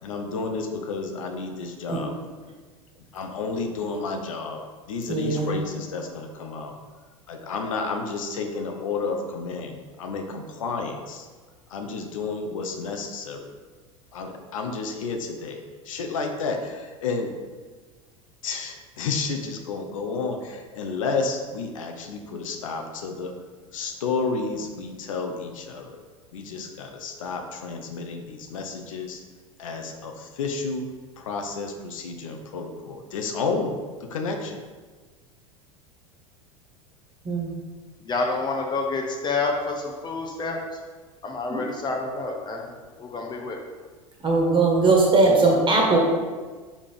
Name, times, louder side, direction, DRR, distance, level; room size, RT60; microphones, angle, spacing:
voice 1, 0.0-2.1 3.1-4.6 4.9-6.7 7.3-11.3 11.7-13.5 14.1-15.6 15.8-17.3 18.4-23.3 23.7-26.0 26.3-29.2 29.6-30.8 31.2-33.7 34.0-34.6, left 4 dB, 70° left, 4 dB, 0.7 m, -31 dB
voice 2, 5.1-5.6 37.2-37.5 41.5-41.6 44.2-46.0, right 3 dB, 25° right, -1 dB, 1.6 m, -20 dB
voice 3, 38.0-40.6 41.2-43.6, left 3 dB, 25° left, 1 dB, 0.8 m, -28 dB
5.4 x 4.9 x 3.5 m, 1.4 s
figure-of-eight pair, 80°, 18 cm